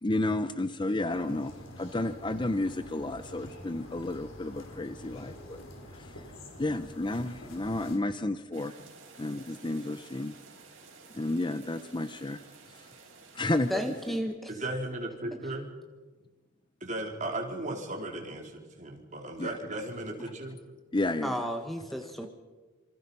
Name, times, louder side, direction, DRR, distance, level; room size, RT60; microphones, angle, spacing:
voice 1, 0.0-5.6 5.9-6.2 6.6-8.8 9.2-10.4 11.1-12.4 12.8-12.9 13.3-13.8 19.4-19.6 20.9-21.4, left 2 dB, 25° left, 10 dB, 0.7 m, -31 dB
sound 1, 1.1-8.0, left 1 dB, 85° left, 5.0 m, -47 dB
sound 2, 8.5-14.2, right 4 dB, 70° right, 6.4 m, -53 dB
voice 2, 13.7-14.5 21.2-22.3, equal, ahead, 4 dB, 1.6 m, -33 dB
voice 3, 14.5-15.6 16.8-20.6 21.4-21.6, right 1 dB, 40° right, 2 dB, 3.8 m, -36 dB
27.0 x 25.0 x 5.5 m, 1.3 s
head